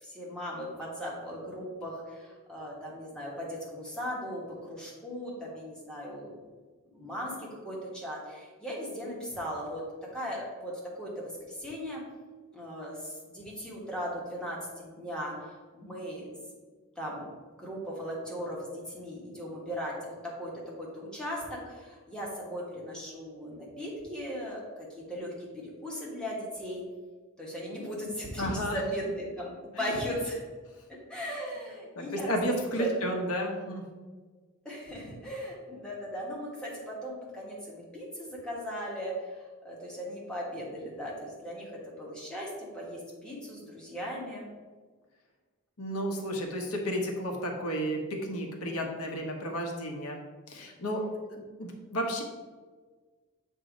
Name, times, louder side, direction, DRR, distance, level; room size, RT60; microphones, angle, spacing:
voice 1, 0.0-6.4 6.9-9.8 10.1-12.0 12.5-16.3 16.9-17.2 17.5-20.5 20.8-25.5 25.8-26.8 27.4-30.4 30.9-32.3 32.7-33.1 34.6-44.4, equal, 5° left, -5 dB, 1.3 m, -38 dB
voice 2, 28.4-28.8 32.0-33.8 45.8-50.2 50.5-51.0 51.3-52.2, equal, 90° left, 1 dB, 1.0 m, -32 dB
7.6 x 2.7 x 5.0 m, 1.4 s
head